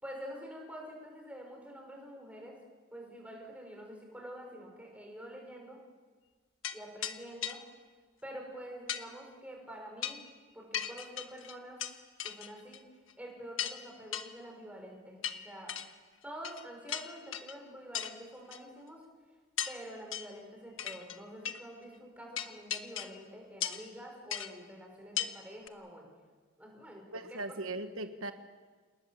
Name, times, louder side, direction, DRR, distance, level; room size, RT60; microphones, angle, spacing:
voice 1, 0.0-2.6 2.9-5.8 6.7-7.6 8.2-10.2 10.5-11.8 12.2-12.8 13.2-15.7 16.2-19.0 19.7-26.1 26.6-27.4, equal, 5° right, 0 dB, 5.7 m, -47 dB
sound 1, 6.6-6.8 7.0-7.2 7.4-7.6 8.9-9.0 10.0-10.3 10.7-11.9 12.2-12.8 13.1-13.2 13.6-13.8 14.1-14.3 15.2-15.9 16.4-16.6 16.9-17.6 17.9-18.1 18.5-18.6 19.6-19.8 20.1-20.4 20.8-21.2 21.4-21.6 22.4-23.2 23.6-23.9 24.3-24.5 25.2-25.3 25.7-25.8, left 10 dB, 70° left, 1.2 m, -37 dB
voice 2, 27.1-28.3, right 2 dB, 80° right, 8 dB, 1.2 m, -38 dB
28.0 x 19.5 x 7.3 m, 1.4 s
head